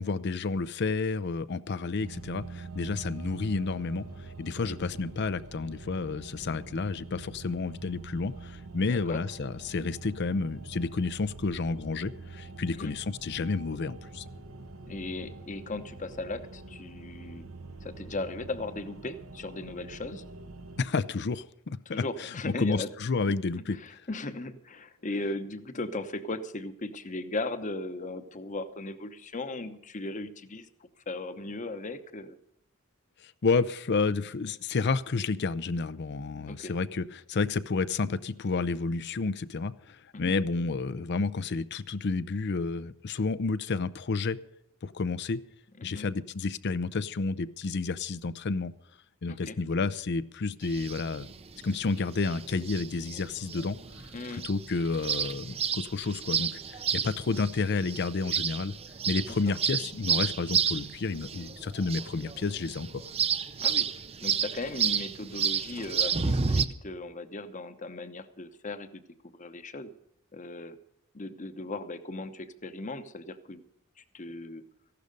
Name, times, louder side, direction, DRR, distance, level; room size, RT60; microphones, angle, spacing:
voice 1, 0.0-14.2 20.8-23.8 33.2-44.4 44.8-45.4 45.8-48.7 49.2-51.3 51.6-58.7 59.1-63.0, left 4 dB, 55° left, 15 dB, 0.5 m, -30 dB
sound 1, 2.0-20.9, right 3 dB, 85° right, 1.0 m, -45 dB
voice 2, 8.8-9.2 12.7-12.9 14.8-17.5 17.8-20.2 21.9-22.9 23.7-30.7 31.1-32.4 36.5-36.7 40.1-40.4 45.8-46.1 49.3-49.6 54.1-54.5 59.3-59.4 63.6-63.9 64.2-69.0 69.3-69.9 70.3-70.8 71.1-73.6 74.1-74.6, left 2 dB, 35° left, 11 dB, 0.9 m, -37 dB
sound 2, 50.6-66.7, right 7 dB, 30° right, 0.6 m, -31 dB
15.0 x 12.0 x 5.3 m, 0.79 s
head